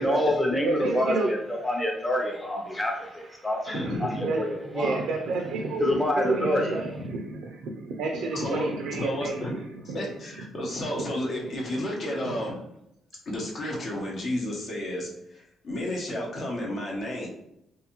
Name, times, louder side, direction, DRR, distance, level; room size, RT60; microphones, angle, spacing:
voice 1, 0.0-5.0 5.8-6.8, left 1 dB, 15° left, 1 dB, 0.6 m, -27 dB
voice 2, 0.6-1.3 3.3-10.1 10.4-10.5 11.4-11.8 12.2-12.4, right 3 dB, 80° right, 2 dB, 0.4 m, -31 dB
voice 3, 3.7-4.2 7.0-7.1 8.3-9.5 9.9-12.5 13.3-17.3, left 1 dB, 55° left, -2 dB, 0.8 m, -32 dB
2.5 x 2.4 x 2.9 m, 0.81 s
cardioid pair, 90°, 0 cm